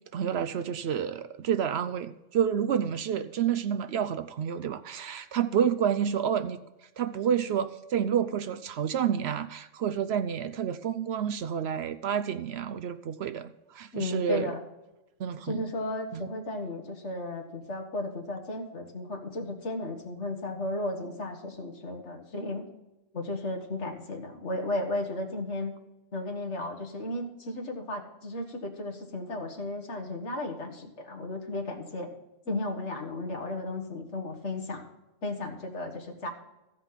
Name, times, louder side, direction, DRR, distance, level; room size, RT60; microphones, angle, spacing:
voice 1, 0.1-6.6 7.0-14.5 15.2-15.7 16.1-16.3, right 8 dB, 65° right, 11 dB, 0.8 m, -29 dB
voice 2, 13.9-14.6 15.4-22.7 23.1-25.7 26.1-32.1 32.5-34.8 35.2-36.3, left 2 dB, 65° left, 2 dB, 1.8 m, -34 dB
15.0 x 5.1 x 5.7 m, 1.0 s
omnidirectional pair, 1.3 m